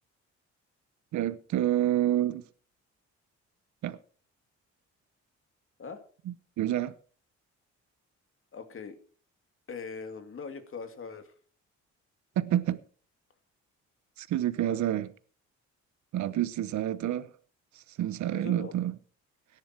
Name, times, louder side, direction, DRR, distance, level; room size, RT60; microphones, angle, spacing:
voice 1, 1.1-2.4 3.8-4.0 6.3-6.9 12.4-12.8 14.2-15.1 16.1-17.3 17.7-18.9, right 12 dB, 70° right, 0.9 m, -28 dB
voice 2, 8.5-9.0 9.7-11.3 14.7-14.9 18.3-18.7, left 5 dB, 45° left, 2.5 m, -41 dB
17.5 x 11.0 x 4.6 m
cardioid pair, 90°, 30 cm